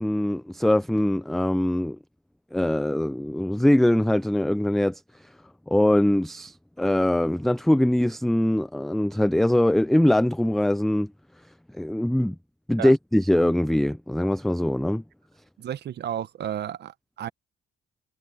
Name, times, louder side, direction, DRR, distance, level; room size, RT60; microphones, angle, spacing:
voice 1, 0.0-2.0 2.5-5.3 5.7-11.1 11.7-12.4 12.7-15.0, left 1 dB, ahead, 0.3 m, -22 dB
voice 2, 15.6-17.3, right 10 dB, 60° right, 0.9 m, -32 dB
cardioid pair, 90°, 20 cm